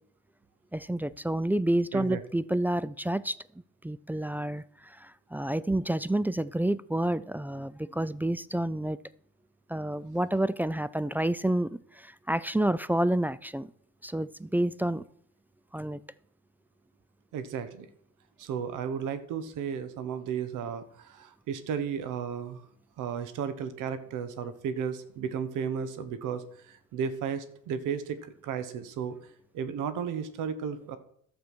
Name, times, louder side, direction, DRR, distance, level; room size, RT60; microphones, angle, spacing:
voice 1, 0.7-3.4 3.8-9.0 9.7-13.7 14.0-15.0 15.7-16.0, right 1 dB, 5° right, 18 dB, 0.3 m, -29 dB
voice 2, 17.3-17.9 18.4-22.7 23.0-29.2 29.5-31.0, right 7 dB, 90° right, 12 dB, 1.2 m, -34 dB
11.5 x 6.9 x 6.1 m, 0.68 s
cardioid pair, 90°, 30 cm